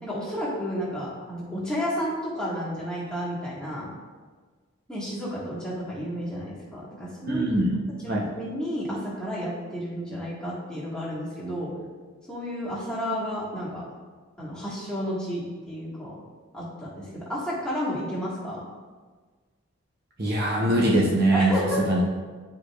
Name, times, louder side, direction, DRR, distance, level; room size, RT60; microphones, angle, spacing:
voice 1, 0.0-3.9 4.9-7.5 8.0-11.7 12.3-13.8 14.4-16.1 16.5-18.6 21.3-21.8, equal, 5° left, -9 dB, 1.7 m, -31 dB
voice 2, 7.3-7.8 8.1-8.3 20.2-21.5 21.9-22.0, right 1 dB, 45° right, -3 dB, 0.9 m, -22 dB
10.5 x 4.9 x 2.4 m, 1.4 s
head